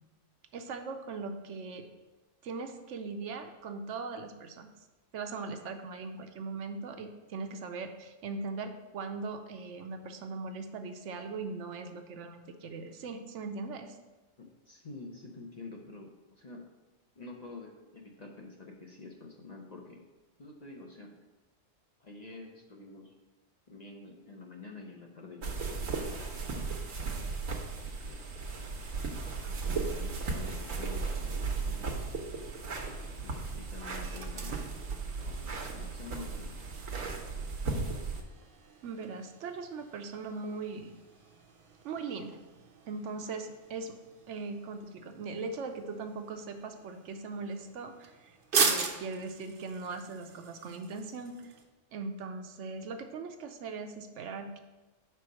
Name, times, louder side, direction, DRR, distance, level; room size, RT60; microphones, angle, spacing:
voice 1, 0.5-1.9 2.4-4.7 5.1-14.0 38.8-40.9 41.8-42.4 42.9-44.0 44.3-51.5 51.9-54.6, right 4 dB, 75° right, 6 dB, 0.9 m, -40 dB
voice 2, 14.4-16.1 16.4-16.6 17.2-20.0 20.4-21.1 22.0-23.1 23.7-26.1 27.0-27.4 27.8-28.2 29.4-32.1 32.9-34.7 35.2-36.6 37.0-37.3, left 3 dB, 40° left, 0 dB, 0.7 m, -48 dB
sound 1, 25.4-38.2, right 4 dB, 90° right, 1.3 m, -36 dB
sound 2, 32.0-51.6, right 5 dB, 50° right, 0.8 m, -40 dB
5.3 x 4.5 x 6.1 m, 1.1 s
omnidirectional pair, 1.3 m